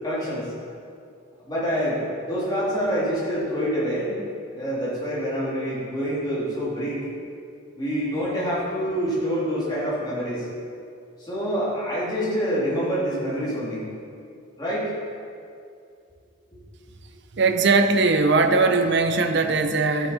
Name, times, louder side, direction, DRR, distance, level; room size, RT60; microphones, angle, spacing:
voice 1, 0.0-0.5 1.4-4.2 4.5-7.1 7.8-10.4 11.2-13.9 14.6-14.9 16.5-16.6, equal, 20° left, -7 dB, 2.6 m, -26 dB
voice 2, 17.3-20.1, right 3 dB, 55° right, 7 dB, 0.6 m, -20 dB
12.5 x 7.2 x 4.2 m, 2.4 s
head